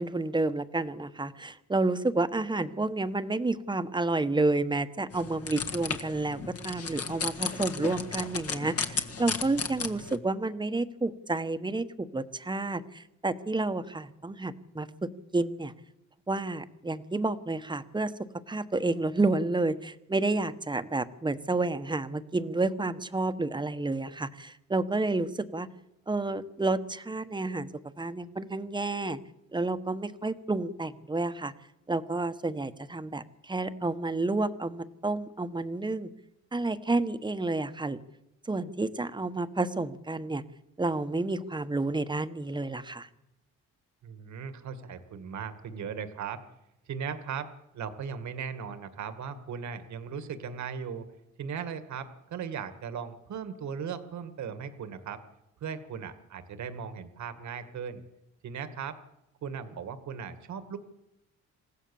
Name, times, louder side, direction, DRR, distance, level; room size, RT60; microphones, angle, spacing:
voice 1, 0.0-15.7 16.3-25.7 26.1-27.7 28.0-29.2 29.5-31.5 31.9-36.1 36.5-38.0 38.5-40.4 40.8-43.1, right 2 dB, 15° right, 11 dB, 1.2 m, -30 dB
sound 1, 5.1-10.2, left 5 dB, 50° left, 1.8 m, -34 dB
voice 2, 44.0-46.4 46.9-47.5 47.7-51.1 51.4-55.2 55.6-58.0 58.4-59.0 59.4-60.8, right 7 dB, 70° right, 10 dB, 2.0 m, -37 dB
27.0 x 15.5 x 7.2 m, 0.91 s
cardioid pair, 90°, 30 cm